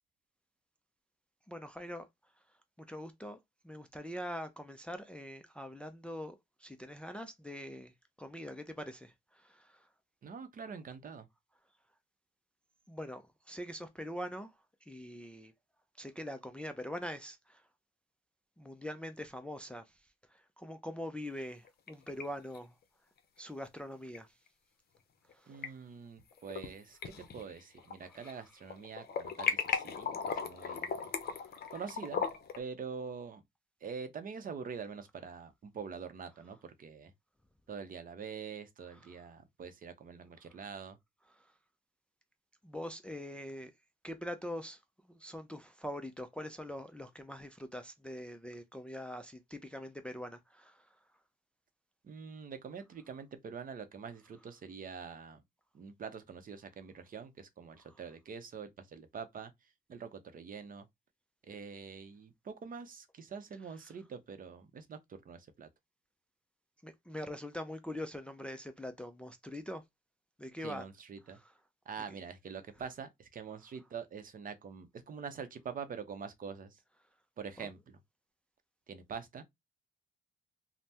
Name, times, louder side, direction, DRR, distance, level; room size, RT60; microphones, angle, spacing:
voice 1, 1.5-2.1 2.9-3.4 3.6-7.9 8.2-9.9 12.9-14.5 14.9-15.5 16.0-17.6 18.6-19.8 20.3-22.7 23.4-24.3 25.3-25.5 28.1-28.3 38.9-39.2 41.3-41.5 42.6-43.7 44.0-44.8 45.1-50.9 57.9-58.0 63.8-63.9 66.8-69.8 70.4-70.8 71.3-71.5 77.6-77.7, equal, 5° left, 0.4 m, -43 dB
voice 2, 10.2-11.3 25.5-31.0 31.7-32.2 32.6-33.4 33.8-37.1 37.7-41.0 52.0-55.4 55.7-59.5 59.9-60.9 61.5-65.7 70.6-71.4 71.9-76.8 77.4-78.0 78.9-79.4, right 6 dB, 45° right, 0.6 m, -45 dB
sound 1, 21.5-22.2 22.5-22.6 24.1-24.2 25.3-25.7 26.2-26.7 27.0-28.4 28.6-32.6, left 6 dB, 50° left, 0.7 m, -37 dB
3.3 x 2.1 x 2.8 m
cardioid pair, 90°, 20 cm